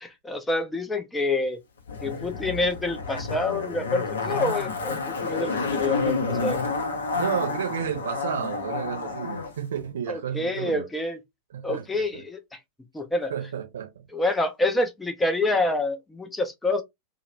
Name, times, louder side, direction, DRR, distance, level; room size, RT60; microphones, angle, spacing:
voice 1, 0.0-1.6 2.0-6.6 10.1-11.2 11.6-12.6 12.9-13.3 14.1-16.8, left 2 dB, 10° left, 0.5 m, -27 dB
Zipper (clothing), 1.9-9.5 9.8-9.9, left 4 dB, 70° left, 0.5 m, -29 dB
voice 2, 7.1-10.9 11.5-11.8 12.1-12.2 13.3-13.9, right 8 dB, 65° right, 0.7 m, -31 dB
2.2 x 2.0 x 3.0 m
figure-of-eight pair, 90°, 0 cm